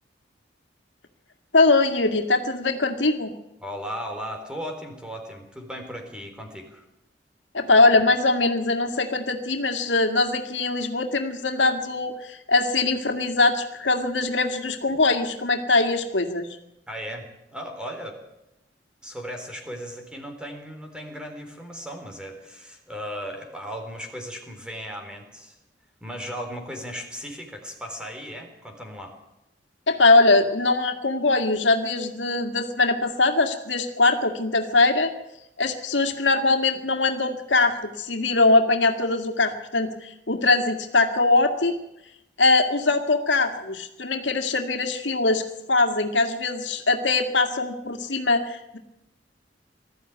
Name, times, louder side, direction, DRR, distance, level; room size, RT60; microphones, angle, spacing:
voice 1, 1.5-3.3 7.5-16.5 29.9-35.1 35.6-41.7 42.4-45.4 45.7-48.8, left 3 dB, 90° left, 6 dB, 2.1 m, -22 dB
voice 2, 3.6-6.8 16.9-18.2 19.0-25.6 26.0-29.1, equal, 5° right, 4 dB, 3.9 m, -36 dB
20.0 x 14.0 x 9.4 m, 0.89 s
head